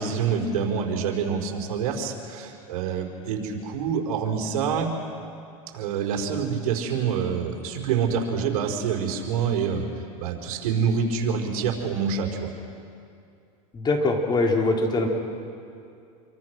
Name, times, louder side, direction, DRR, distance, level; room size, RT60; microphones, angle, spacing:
voice 1, 0.0-4.9 5.7-9.9 10.2-12.5, right 6 dB, 75° right, 2 dB, 4.6 m, -26 dB
voice 2, 13.7-15.1, left 2 dB, 25° left, 2 dB, 3.4 m, -22 dB
27.5 x 24.5 x 6.2 m, 2.5 s
supercardioid pair, 120°, 19 cm